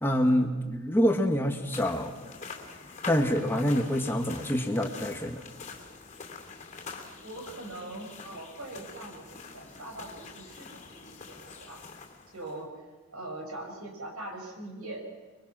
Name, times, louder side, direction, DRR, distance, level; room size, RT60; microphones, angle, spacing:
voice 1, 0.0-2.1 3.1-5.4, equal, 10° left, 4 dB, 1.3 m, -26 dB
sound 1, 1.7-12.6, left 4 dB, 30° left, 2.8 m, -45 dB
voice 2, 7.2-11.8 12.3-12.7 13.1-15.0, right 2 dB, 75° right, 2 dB, 6.2 m, -42 dB
26.5 x 22.5 x 6.0 m, 1.3 s
head